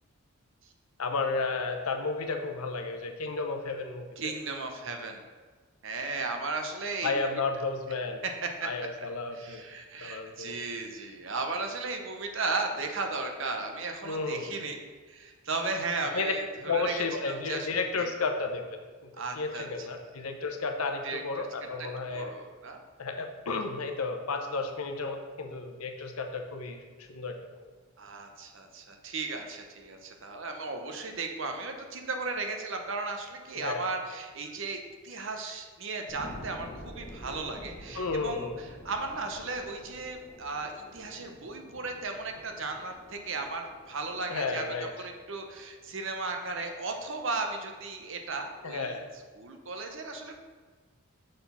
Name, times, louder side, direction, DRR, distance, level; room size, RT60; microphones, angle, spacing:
voice 1, 1.0-4.3 7.0-8.2 8.6-9.6 10.0-10.6 14.0-14.5 16.1-16.3 16.6-19.1 19.4-22.3 23.0-27.4 33.6-33.9 37.9-38.6 44.3-44.9 48.6-49.0, left 3 dB, 75° left, 4 dB, 0.8 m, -32 dB
voice 2, 4.2-5.2 5.8-7.3 8.4-8.7 9.0-9.1 9.3-14.8 15.1-18.1 19.1-19.9 21.0-21.5 21.8-22.8 28.0-44.7 45.0-50.3, right 3 dB, 55° right, 4 dB, 0.8 m, -36 dB
sound 1, 36.1-47.1 47.6-47.7, equal, 30° left, 1.2 m, -49 dB
6.4 x 4.1 x 5.5 m, 1.5 s
head